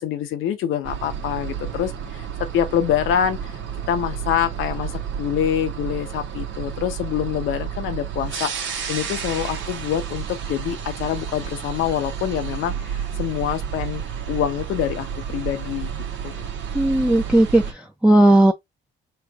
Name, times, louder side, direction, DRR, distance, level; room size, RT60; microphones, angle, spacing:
voice 1, 0.0-2.3 2.5-3.6 3.9-4.9 5.2-14.0 14.3-15.9 16.2-16.5, left 10 dB, 90° left, 1.1 m, -25 dB
sound 1, 0.8-17.7, right 8 dB, 75° right, 1.2 m, -31 dB
voice 2, 16.7-18.5, right 1 dB, 5° right, 0.7 m, -16 dB
3.3 x 3.2 x 4.8 m
cardioid pair, 90°, 20 cm